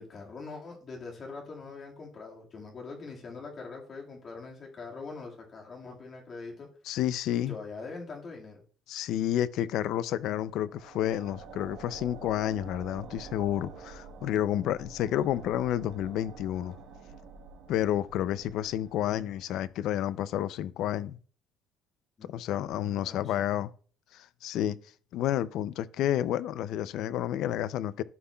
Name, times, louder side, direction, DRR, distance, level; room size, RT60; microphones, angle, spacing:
voice 1, 0.0-6.7 7.3-8.6 22.2-22.3 23.0-23.5, left 4 dB, 30° left, 1.9 m, -43 dB
voice 2, 6.9-7.6 8.9-16.8 17.7-21.2 22.2-23.7 24.1-24.8 25.1-28.0, left 12 dB, 60° left, 0.4 m, -30 dB
sound 1, 10.5-19.8, right 5 dB, 85° right, 1.2 m, -48 dB
13.5 x 5.6 x 2.3 m
cardioid pair, 175°, 0 cm